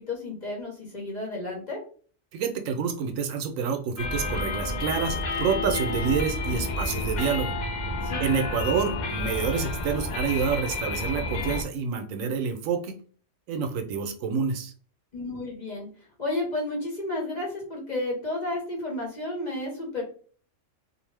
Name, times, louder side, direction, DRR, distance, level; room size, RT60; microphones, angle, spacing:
voice 1, 0.0-1.8 8.0-8.2 15.1-15.9 16.2-20.0, left 2 dB, 40° left, -2 dB, 0.9 m, -32 dB
voice 2, 2.3-7.6 8.2-13.0 13.5-14.7, right 6 dB, 80° right, 5 dB, 1.0 m, -28 dB
sound 1, 4.0-11.6, left 3 dB, 60° left, 0.4 m, -30 dB
2.7 x 2.0 x 3.1 m, 0.43 s
omnidirectional pair, 1.3 m